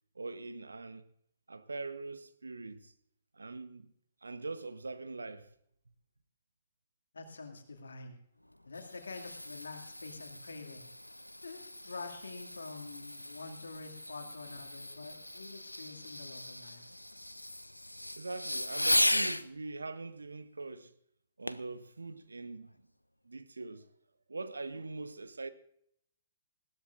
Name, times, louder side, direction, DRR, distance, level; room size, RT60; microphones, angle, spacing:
voice 1, 0.1-1.1 1.5-2.9 3.3-3.9 4.2-5.5 18.2-20.9 21.4-22.9 23.2-23.9 24.3-25.5, right 3 dB, 75° right, 0.9 m, -42 dB
voice 2, 7.1-8.2 8.7-10.9 11.4-16.9, left 3 dB, 70° left, 2.3 m, -46 dB
Fireworks, 8.5-19.5 21.5-21.7 22.3-22.4, left 1 dB, 90° left, 0.5 m, -36 dB
20.0 x 16.5 x 2.6 m
figure-of-eight pair, 120°, 0 cm